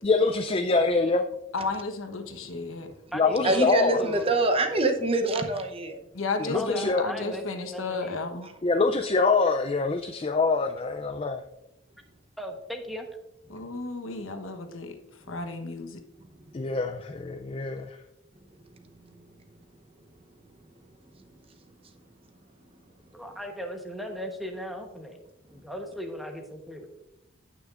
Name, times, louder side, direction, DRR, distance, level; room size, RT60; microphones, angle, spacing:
voice 1, 0.0-1.2 3.1-4.0 6.4-7.0 8.6-11.4 16.5-18.0, left 3 dB, 30° left, 0.4 m, -25 dB
voice 2, 1.5-2.9 6.1-8.5 13.5-15.0 15.3-16.0, left 3 dB, 90° left, 1.1 m, -33 dB
voice 3, 2.3-2.9 3.4-6.0 8.4-8.5 13.5-13.7 15.2-15.3 16.2-16.6 18.3-19.8 20.2-20.3 20.8-20.9 21.1-22.0 22.6-22.7, right 2 dB, 30° right, 0.8 m, -29 dB
voice 4, 3.1-4.3 6.5-8.3 12.4-13.1 23.1-25.2 25.5-26.9, equal, ahead, 1.0 m, -37 dB
16.5 x 6.1 x 2.5 m
head